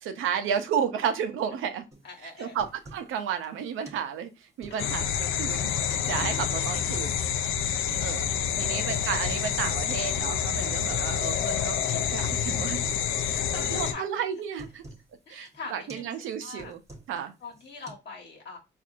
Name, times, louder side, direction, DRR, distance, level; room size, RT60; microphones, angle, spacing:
voice 1, 0.0-1.8 2.2-7.2 8.0-8.3 8.6-12.8 13.2-14.8 15.3-16.8 17.1-17.3, right 8 dB, 85° right, 0.6 m, -32 dB
sound 1, 1.9-2.1 2.4-3.1 3.4-3.5 3.8-4.0 4.4-5.2 5.8-6.1 6.4-7.1 7.9-8.0 8.4-9.1 9.4-9.5 9.9-10.1 10.4-11.1 11.4-11.5 11.9-12.1 12.4-13.1 13.4-13.6 13.9-14.0 14.3-15.1 15.4-15.6 15.9-16.1 16.4-17.2 17.5-17.9, right 1 dB, 15° right, 1.0 m, -48 dB
voice 2, 2.0-2.6 4.7-4.9 6.2-6.4 7.6-8.3 8.6-8.8 10.7-10.9 13.0-14.2 15.3-16.1 16.4-16.7 17.4-18.6, left 4 dB, 60° left, 1.3 m, -44 dB
sound 2, 4.8-13.9, left 8 dB, 85° left, 0.5 m, -28 dB
4.3 x 2.5 x 2.4 m
cardioid pair, 90°, 20 cm